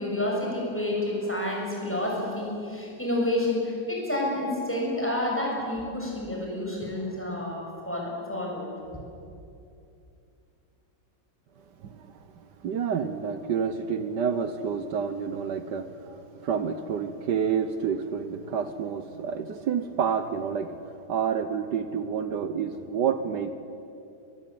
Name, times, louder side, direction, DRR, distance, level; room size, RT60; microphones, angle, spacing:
voice 1, 0.0-9.0, left 1 dB, 5° left, -3 dB, 7.1 m, -29 dB
voice 2, 11.8-12.1 12.6-23.5, right 7 dB, 75° right, 10 dB, 1.6 m, -29 dB
22.0 x 21.5 x 9.5 m, 2.6 s
omnidirectional pair, 1.9 m